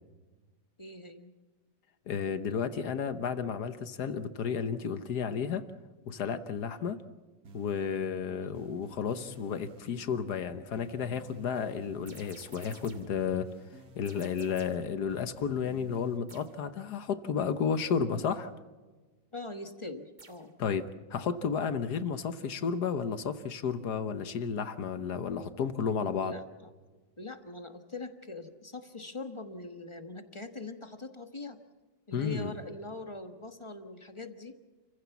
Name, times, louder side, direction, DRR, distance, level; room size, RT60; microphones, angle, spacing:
voice 1, 0.8-1.3 8.3-8.6 19.3-20.5 26.2-26.7 27.2-31.6 32.1-34.5, left 2 dB, 20° left, 7 dB, 1.0 m, -42 dB
voice 2, 2.1-5.6 6.1-7.0 7.5-13.5 13.9-18.5 20.6-26.3 32.1-32.5, left 6 dB, 65° left, 11 dB, 1.5 m, -32 dB
sound 1, 7.4-16.2, right 1 dB, 55° right, 2.0 m, -54 dB
sound 2, 12.1-13.2 14.0-14.9 16.3-16.6 20.2-20.5, right 3 dB, 30° right, 1.3 m, -53 dB
29.0 x 15.5 x 7.0 m, 1.3 s
omnidirectional pair, 2.0 m